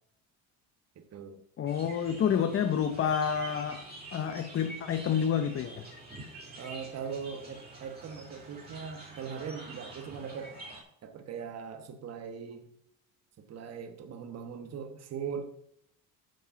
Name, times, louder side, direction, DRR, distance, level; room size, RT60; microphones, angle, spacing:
voice 1, 1.0-1.4 6.6-10.5 11.0-12.7 13.5-15.4, right 6 dB, 45° right, 1.1 m, -40 dB
voice 2, 1.6-5.9, left 8 dB, 35° left, 0.7 m, -29 dB
sound 1, 1.7-10.8, right 2 dB, 25° right, 2.9 m, -47 dB
9.2 x 4.8 x 7.0 m
cardioid pair, 115°, 37 cm